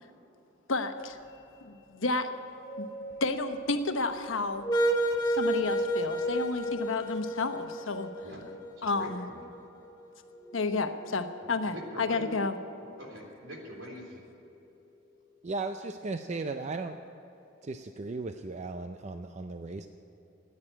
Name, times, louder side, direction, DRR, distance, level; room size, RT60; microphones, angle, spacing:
voice 1, 0.7-1.2 1.6-2.3 2.8-2.9 3.2-4.7 5.2-8.1 8.8-9.3 10.5-12.6, left 3 dB, 85° left, 7 dB, 1.0 m, -31 dB
sound 1, 2.6-9.6 10.3-14.0, right 1 dB, 25° left, 2.0 m, -33 dB
voice 2, 8.8-9.4 11.6-12.4 12.8-14.2, equal, 75° right, 0 dB, 3.5 m, -44 dB
voice 3, 15.4-17.0 17.6-19.9, right 3 dB, 35° right, 7 dB, 0.5 m, -36 dB
14.5 x 9.5 x 9.9 m, 3.0 s
head